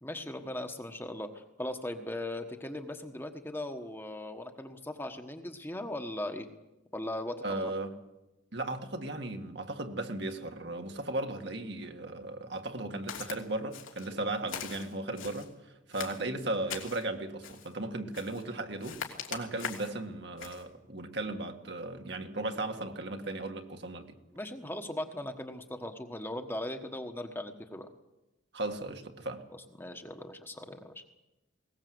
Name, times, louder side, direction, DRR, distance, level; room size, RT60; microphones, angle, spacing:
voice 1, 0.0-6.5 6.9-7.6 24.3-27.9 29.8-31.0, left 1 dB, 10° left, 5 dB, 1.3 m, -39 dB
voice 2, 7.4-7.9 8.5-19.0 19.3-24.1 28.5-29.4, right 2 dB, 55° right, 5 dB, 1.8 m, -36 dB
Walk footsteps, 13.1-13.4 13.7-14.1 14.5-15.5 15.9-17.0 17.4-17.7 18.1-18.5 18.8-20.0 20.4-20.6, left 7 dB, 85° left, 3.0 m, -41 dB
21.0 x 19.0 x 7.8 m, 0.98 s
head